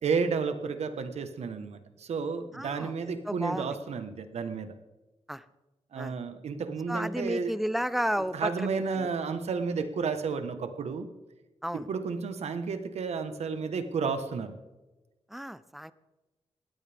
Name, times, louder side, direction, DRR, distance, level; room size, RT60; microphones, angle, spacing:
voice 1, 0.0-4.7 5.9-7.5 8.3-11.1 11.9-14.5, right 5 dB, 85° right, 9 dB, 1.3 m, -32 dB
voice 2, 2.5-2.9 3.3-3.7 5.3-5.4 6.0-6.1 6.9-9.1 11.6-11.9 15.3-15.9, equal, ahead, 15 dB, 0.6 m, -32 dB
19.5 x 16.0 x 3.6 m, 1.1 s
wide cardioid pair, 140°, 11 cm